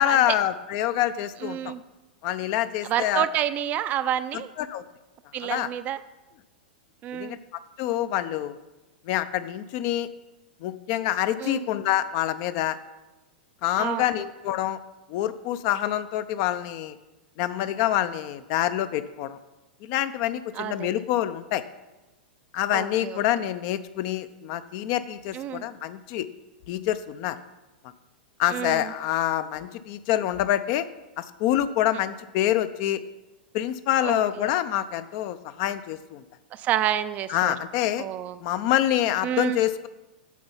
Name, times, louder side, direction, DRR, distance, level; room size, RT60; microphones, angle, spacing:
voice 1, 0.0-1.7 2.2-3.3 4.3-4.8 5.4-5.7 7.1-7.4 7.8-8.5 9.1-10.1 10.6-12.8 13.6-14.8 15.1-16.9 17.4-19.4 19.8-21.6 22.5-26.3 26.7-27.4 28.4-30.9 31.2-33.0 33.5-36.2 37.3-38.1 38.4-39.9, left 12 dB, 45° left, 12 dB, 0.6 m, -26 dB
voice 2, 1.4-1.8 2.8-4.5 5.3-6.0 7.0-7.4 11.4-11.6 13.8-14.0 20.6-21.0 22.7-23.2 25.3-25.6 28.5-28.9 34.0-34.5 36.5-37.5 38.0-38.4 39.2-39.6, right 11 dB, 30° right, 12 dB, 0.5 m, -29 dB
9.2 x 6.9 x 5.6 m, 1.1 s
figure-of-eight pair, 100°, 5 cm